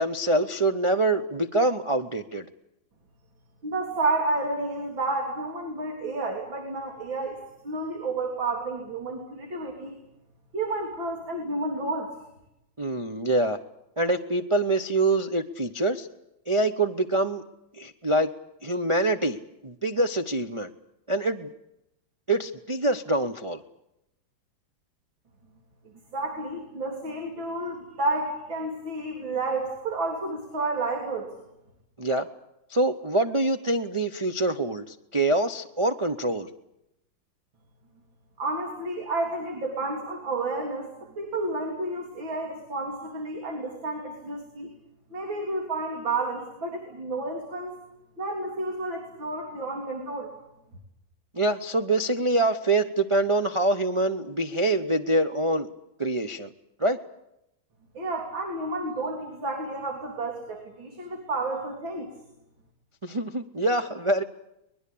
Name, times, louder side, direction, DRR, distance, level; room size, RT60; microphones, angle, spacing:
voice 1, 0.0-2.4 12.8-13.6 14.0-16.1 16.5-17.4 17.8-18.3 18.6-19.4 19.6-20.7 21.1-21.5 22.3-23.6 32.0-32.3 32.7-36.5 51.4-55.7 56.0-56.5 56.8-57.0 63.0-64.2, right 2 dB, 45° right, 5 dB, 0.4 m, -25 dB
voice 2, 3.6-10.0 10.5-12.1 26.1-31.3 38.4-40.9 41.2-44.7 45.1-47.8 48.2-50.3 57.9-62.1, right 2 dB, 80° right, 2 dB, 4.0 m, -31 dB
24.0 x 20.5 x 8.6 m, 0.85 s
omnidirectional pair, 2.1 m